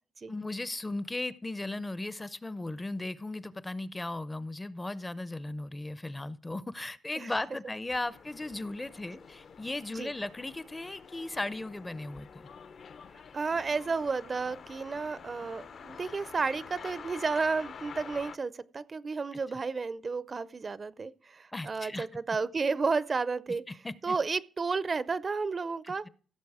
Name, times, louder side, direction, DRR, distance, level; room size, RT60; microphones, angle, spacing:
voice 1, 0.3-12.3 21.5-22.1 23.7-24.2, left 2 dB, 15° left, 0.5 m, -36 dB
sound 1, 7.9-18.4, left 6 dB, 55° left, 0.7 m, -48 dB
voice 2, 13.3-23.6 24.0-26.1, right 4 dB, 35° right, 0.5 m, -32 dB
16.0 x 6.8 x 4.8 m
cardioid pair, 130°, 0 cm